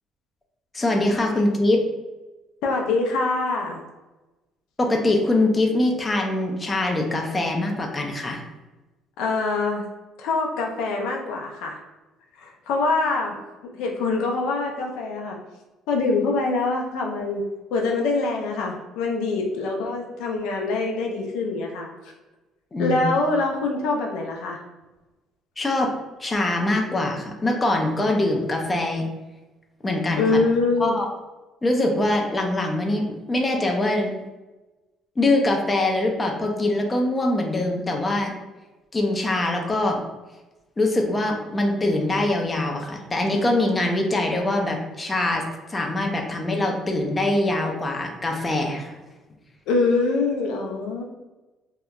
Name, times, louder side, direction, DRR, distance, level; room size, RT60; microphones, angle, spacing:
voice 1, 0.7-1.8 4.8-8.4 22.7-23.0 25.6-25.9 26.2-29.1 29.8-30.3 30.8-31.1 31.6-34.1 35.2-38.3 38.9-40.0 40.8-49.0, left 2 dB, 20° left, 2 dB, 0.4 m, -23 dB
voice 2, 2.6-3.8 9.2-9.8 10.2-11.8 12.4-13.3 13.7-15.4 15.9-17.4 17.7-21.9 22.8-24.6 30.2-31.0 49.7-51.0, left 3 dB, 80° left, 1 dB, 0.4 m, -24 dB
2.7 x 2.0 x 2.3 m, 1.1 s
supercardioid pair, 85°, 0 cm